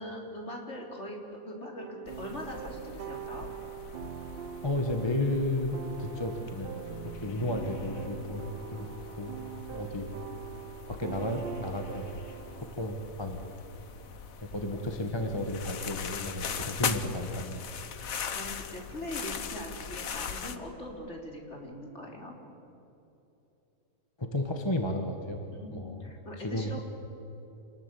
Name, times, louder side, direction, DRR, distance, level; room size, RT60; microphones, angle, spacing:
voice 1, 0.0-3.5 7.3-7.5 18.0-22.3 25.5-26.8, left 1 dB, 45° left, 0 dB, 4.1 m, -41 dB
sound 1, 1.8-12.7, right 10 dB, 55° right, 0.6 m, -43 dB
sound 2, 2.1-20.6, left 7 dB, 65° left, 1.5 m, -41 dB
voice 2, 4.6-6.8 7.0-9.4 9.7-10.1 10.9-12.1 12.6-13.4 14.4-17.6 24.2-25.4 25.7-26.1 26.4-26.8, left 1 dB, 15° left, 4 dB, 1.5 m, -33 dB
sound 3, 6.8-17.6, left 1 dB, 10° right, 4.9 m, -53 dB
27.0 x 20.0 x 8.4 m, 2.9 s
omnidirectional pair, 1.6 m